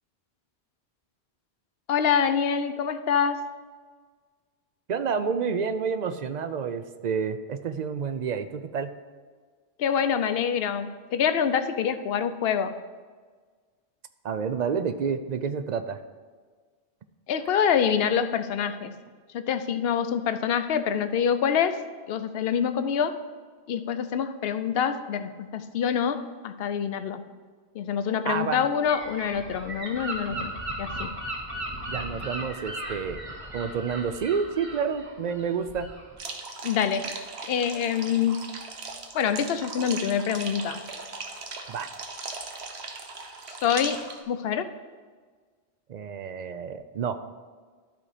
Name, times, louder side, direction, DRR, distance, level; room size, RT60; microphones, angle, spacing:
voice 1, 1.9-3.4 9.8-12.8 17.3-19.0 19.3-21.8 22.1-23.2 23.7-27.2 27.7-30.5 30.8-31.2 36.6-37.1 37.5-38.4 39.1-40.8 43.5-44.7, left 7 dB, 70° left, 10 dB, 0.8 m, -26 dB
voice 2, 4.9-8.9 14.2-16.0 28.2-28.7 31.9-33.2 33.5-35.9 41.7-41.9 45.9-47.2, right 6 dB, 55° right, 10 dB, 0.5 m, -29 dB
Gull seagull / Wind, 28.9-36.1, right 1 dB, 30° right, 1.3 m, -36 dB
sound 1, 36.2-44.2, right 4 dB, 80° right, 1.2 m, -38 dB
12.0 x 4.2 x 4.9 m, 1.5 s
omnidirectional pair, 1.1 m